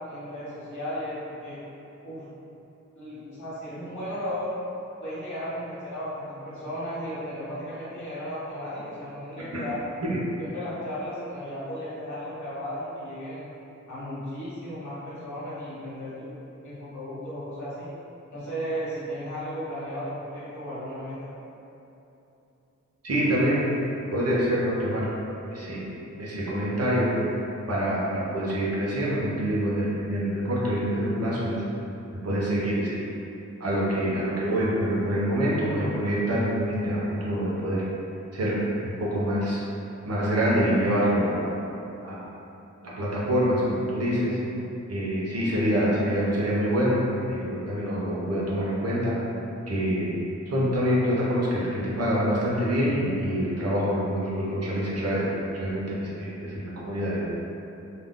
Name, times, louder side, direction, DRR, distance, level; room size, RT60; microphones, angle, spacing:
voice 1, 0.1-1.6 2.0-2.3 2.9-4.5 5.0-9.8 10.4-13.5 13.9-17.9 18.3-21.3, equal, 75° left, -10 dB, 1.2 m, -35 dB
voice 2, 23.0-23.6 24.1-25.1 25.5-25.9 26.2-27.1 27.7-31.6 32.2-32.9 33.6-37.8 38.3-38.6 39.0-39.6 40.0-41.5 42.0-42.2 43.0-44.4 44.9-49.2 49.7-50.1 50.5-57.2, equal, 55° right, -7 dB, 0.7 m, -26 dB
2.4 x 2.1 x 3.6 m, 2.9 s
wide cardioid pair, 90°, 30 cm